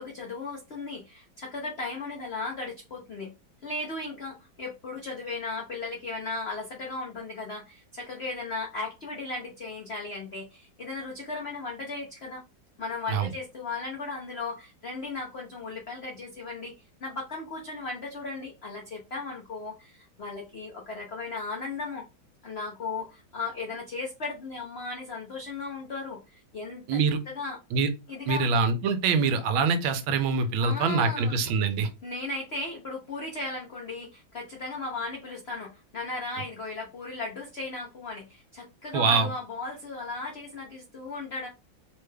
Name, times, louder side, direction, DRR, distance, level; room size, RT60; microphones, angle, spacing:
voice 1, 0.0-3.3 3.6-12.4 12.8-22.0 22.4-27.0 27.3-27.6 28.1-28.5 30.6-31.4 31.8-41.5, left 3 dB, 85° left, 0.5 m, -36 dB
voice 2, 26.9-27.2 27.7-27.9 28.3-31.9 38.9-39.3, right 4 dB, 85° right, 1.4 m, -24 dB
3.7 x 2.2 x 3.2 m
omnidirectional pair, 2.2 m